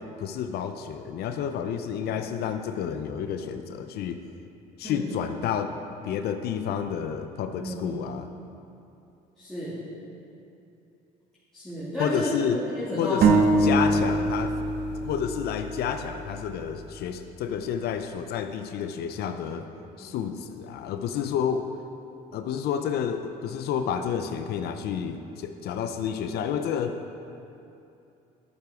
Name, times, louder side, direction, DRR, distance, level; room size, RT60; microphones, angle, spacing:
voice 1, 0.0-4.2 4.8-5.8 6.0-8.3 12.0-12.6 13.0-14.6 15.0-19.7 20.0-21.7 22.3-27.0, left 8 dB, 70° left, 8 dB, 0.6 m, -30 dB
voice 2, 7.5-7.9 9.4-9.8 11.5-13.3 13.7-13.8 20.0-20.1, equal, 5° left, -12 dB, 2.5 m, -32 dB
sound 1, 13.2-16.8, right 2 dB, 70° right, 0.8 m, -24 dB
11.0 x 6.9 x 4.9 m, 2.7 s
cardioid pair, 110°, 17 cm